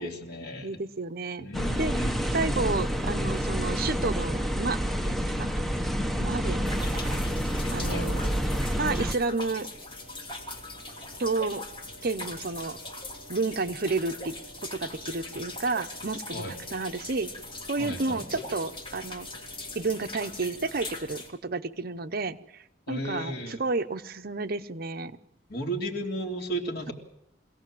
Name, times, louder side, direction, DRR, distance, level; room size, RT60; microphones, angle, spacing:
voice 1, 0.0-0.8 1.4-2.2 7.9-8.6 16.3-16.5 17.8-18.2 22.9-23.6 25.5-26.9, right 1 dB, 55° left, 2 dB, 3.2 m, -34 dB
voice 2, 0.6-1.5 1.8-5.5 6.2-6.6 7.0-7.2 7.7-8.2 8.8-9.7 11.2-11.6 12.0-12.8 13.3-14.3 14.6-17.3 17.7-19.3 19.7-22.4 22.9-25.2, right 3 dB, 55° right, 10 dB, 0.9 m, -31 dB
sound 1, 1.5-9.1, equal, ahead, 1.0 m, -28 dB
sound 2, 6.7-21.3, left 2 dB, 25° left, 2.9 m, -41 dB
24.0 x 17.0 x 7.7 m, 0.83 s
head